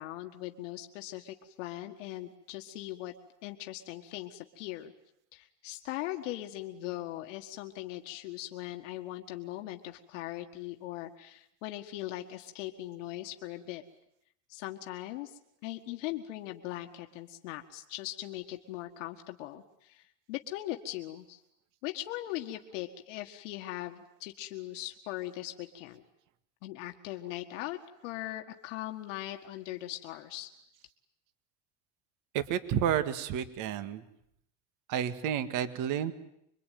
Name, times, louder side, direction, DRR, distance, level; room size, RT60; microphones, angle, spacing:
voice 1, 0.0-3.1 3.4-4.9 5.3-13.8 14.5-21.4 21.8-26.0 26.6-30.5, left 15 dB, 85° left, 4 dB, 1.8 m, -40 dB
voice 2, 32.3-34.0 34.9-36.1, right 9 dB, 60° right, 11 dB, 2.0 m, -30 dB
26.5 x 23.0 x 9.3 m, 0.76 s
supercardioid pair, 120°, 36 cm